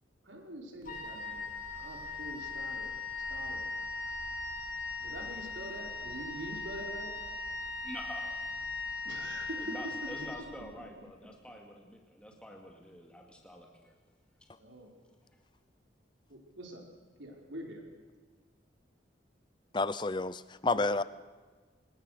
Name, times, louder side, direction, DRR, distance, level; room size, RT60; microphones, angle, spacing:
voice 1, 0.2-1.5 1.7-2.9 3.3-3.7 5.0-7.1 9.0-9.8 10.6-10.7 14.6-14.9 16.3-16.8 17.2-17.8 20.7-21.0, right 1 dB, 85° right, 1 dB, 5.2 m, -44 dB
Wind instrument woodwind instrument, 0.8-10.9, left 3 dB, 45° left, 3.7 m, -39 dB
voice 2, 7.8-8.4 9.6-13.9, equal, 5° left, 0 dB, 2.4 m, -47 dB
voice 3, 19.7-21.0, left 3 dB, 25° left, 16 dB, 0.6 m, -30 dB
26.0 x 20.5 x 6.8 m, 1.4 s
head